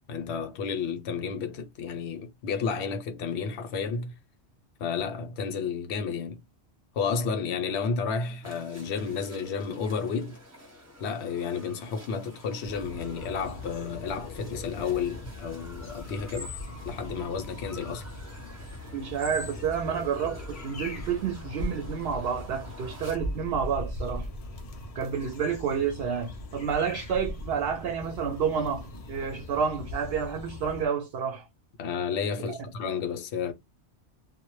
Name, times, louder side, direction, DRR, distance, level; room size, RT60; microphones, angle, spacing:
voice 1, 0.1-4.1 4.8-6.4 6.9-10.4 11.0-16.5 16.8-18.0 31.8-33.5, left 6 dB, 75° left, 0.8 m, -31 dB
sound 1, 8.4-23.2, left 2 dB, 15° right, 0.8 m, -47 dB
sound 2, 12.6-30.9, left 1 dB, 50° left, 0.4 m, -40 dB
voice 2, 18.9-24.3 24.9-31.5 32.4-32.6, right 7 dB, 65° right, 0.7 m, -30 dB
2.1 x 2.1 x 2.9 m
omnidirectional pair, 1.1 m